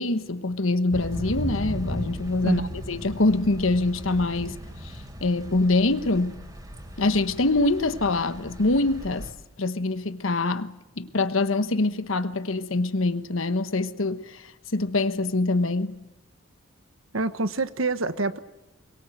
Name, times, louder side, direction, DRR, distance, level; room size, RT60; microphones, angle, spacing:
voice 1, 0.0-2.6 2.9-4.9 5.2-6.4 7.0-9.3 9.6-16.0, left 2 dB, 75° left, 1.2 m, -24 dB
Thunder / Rain, 0.9-9.3, equal, 20° right, 3.7 m, -37 dB
voice 2, 2.4-2.8 17.1-18.4, right 2 dB, 80° right, 1.3 m, -27 dB
23.0 x 22.5 x 7.9 m
head